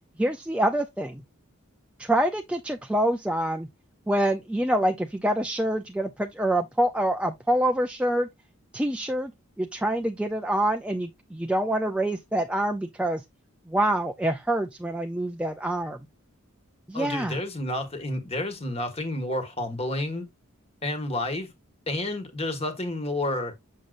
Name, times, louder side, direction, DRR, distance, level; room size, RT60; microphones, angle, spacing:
voice 1, 0.2-1.2 2.0-3.7 4.1-8.3 8.7-9.3 9.6-13.2 13.7-16.0 16.9-17.4, right 1 dB, 5° right, 0.3 m, -26 dB
voice 2, 16.9-20.3 20.8-21.5 21.9-23.5, left 1 dB, 25° left, 1.4 m, -30 dB
7.1 x 6.4 x 2.5 m
head